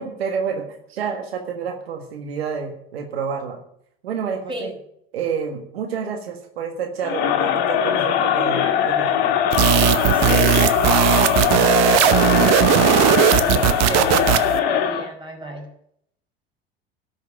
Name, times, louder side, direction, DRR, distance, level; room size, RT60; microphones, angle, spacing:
voice 1, 0.0-3.6 4.0-4.7 5.1-9.4, right 6 dB, 85° right, 4 dB, 1.7 m, -29 dB
Crowd, 7.0-15.1, left 8 dB, 65° left, 1.8 m, -21 dB
sound 1, 9.5-14.6, right 13 dB, 60° right, 1.0 m, -18 dB
voice 2, 10.1-15.7, equal, 15° right, 1 dB, 4.9 m, -32 dB
12.5 x 6.4 x 8.5 m, 0.71 s
hypercardioid pair, 75°, 30 cm